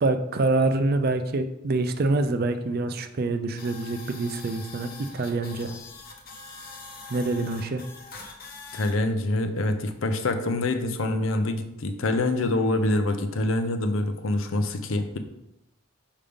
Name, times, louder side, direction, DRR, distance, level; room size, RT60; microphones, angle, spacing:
voice 1, 0.0-5.7 7.1-7.8, right 2 dB, 45° right, 9 dB, 0.4 m, -26 dB
sound 1, 3.6-8.9, left 3 dB, 45° left, 0.9 m, -43 dB
voice 2, 8.7-15.2, left 2 dB, 70° left, 8 dB, 0.6 m, -25 dB
5.5 x 5.1 x 3.4 m, 0.85 s
head